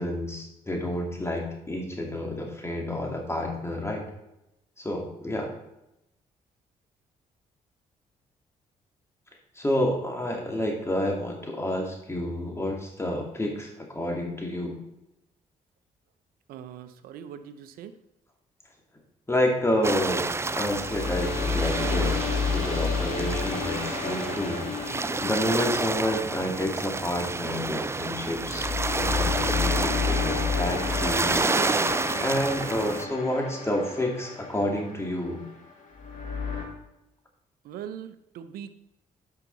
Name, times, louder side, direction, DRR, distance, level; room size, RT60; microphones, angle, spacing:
voice 1, 0.0-4.0 4.8-5.5 9.5-14.8 19.3-20.3 20.6-24.7 25.2-31.4 32.2-35.4, left 1 dB, 20° left, 0 dB, 2.6 m, -29 dB
voice 2, 16.5-17.9 37.6-38.7, right 9 dB, 80° right, 11 dB, 0.7 m, -41 dB
sound 1, 19.7-36.6, left 5 dB, 65° left, 2.6 m, -32 dB
sound 2, 19.8-33.1, right 3 dB, 20° right, 0.4 m, -29 dB
10.5 x 5.9 x 4.1 m, 0.88 s
supercardioid pair, 65°, 15 cm